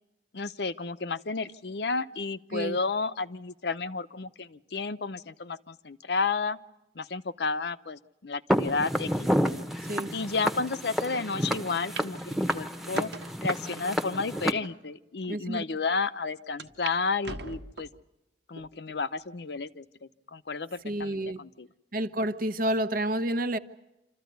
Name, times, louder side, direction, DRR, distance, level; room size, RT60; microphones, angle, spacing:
voice 1, 0.3-6.6 7.0-9.3 10.1-13.1 13.4-17.9 18.5-19.8 20.3-21.7, left 4 dB, 65° left, 0.8 m, -32 dB
Walk footsteps, 8.5-14.5, equal, ahead, 1.0 m, -30 dB
sound 1, 11.5-11.6 12.0-12.1 12.5-13.4 14.0-14.1 14.9-15.0 15.2-15.3 16.6-17.0 17.2-18.0 18.6-19.0 19.5-19.6 20.8-21.2, right 4 dB, 80° right, 1.4 m, -41 dB
voice 2, 15.3-15.6 20.8-21.4 21.9-23.6, right 1 dB, 55° right, 1.0 m, -29 dB
27.0 x 14.0 x 9.3 m
head